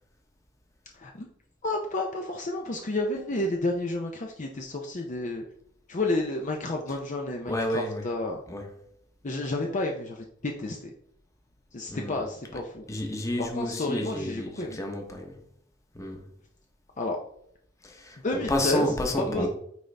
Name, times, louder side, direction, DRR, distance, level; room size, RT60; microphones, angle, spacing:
voice 1, 0.9-1.3 1.6-5.4 5.9-8.4 9.2-10.9 11.7-12.9 13.4-14.8 17.0-17.2 18.2-18.9 19.2-19.5, left 2 dB, 40° left, 0.6 m, -30 dB
voice 2, 7.5-8.2 8.5-8.7 11.9-12.2 12.5-15.4 15.9-16.3 17.8-19.5, left 1 dB, 15° left, 1.1 m, -31 dB
9.4 x 3.8 x 3.4 m
head